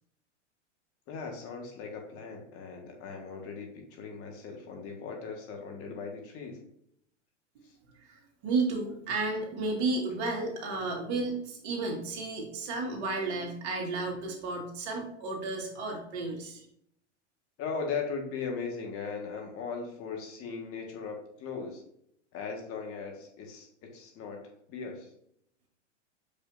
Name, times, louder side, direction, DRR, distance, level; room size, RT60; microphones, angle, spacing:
voice 1, 1.1-6.6 17.6-21.8 22.3-24.4 24.7-25.1, left 5 dB, 35° left, 2 dB, 1.7 m, -38 dB
voice 2, 7.9-16.7, right 3 dB, 55° right, 0 dB, 2.2 m, -33 dB
6.8 x 5.4 x 2.6 m, 0.71 s
hypercardioid pair, 110°, 37 cm